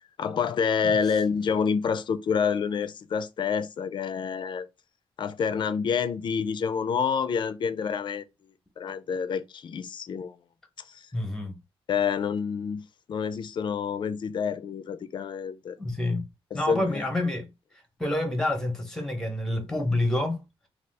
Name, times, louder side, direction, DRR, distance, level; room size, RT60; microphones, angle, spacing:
voice 1, 0.2-4.7 5.2-8.2 8.8-10.4 10.9-11.1 11.9-15.8 16.5-17.1, left 6 dB, 50° left, 0.4 m, -28 dB
voice 2, 11.1-11.5 15.8-16.3 16.5-17.5 18.0-20.4, left 1 dB, 5° left, 0.8 m, -28 dB
2.7 x 2.3 x 3.3 m
cardioid pair, 110°, 10 cm